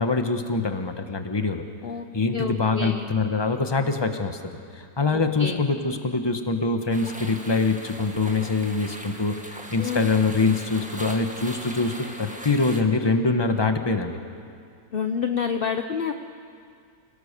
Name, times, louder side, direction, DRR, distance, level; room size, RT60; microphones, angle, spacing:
voice 1, 0.0-1.6 2.1-4.4 4.7-14.2, left 3 dB, 15° left, 6 dB, 1.1 m, -24 dB
voice 2, 2.3-3.1 5.1-5.6 9.8-10.1 14.9-16.1, left 6 dB, 50° left, 6 dB, 0.7 m, -28 dB
sound 1, 6.9-12.8, equal, 5° right, 1.5 m, -40 dB
29.0 x 18.0 x 6.8 m, 2.3 s
omnidirectional pair, 2.0 m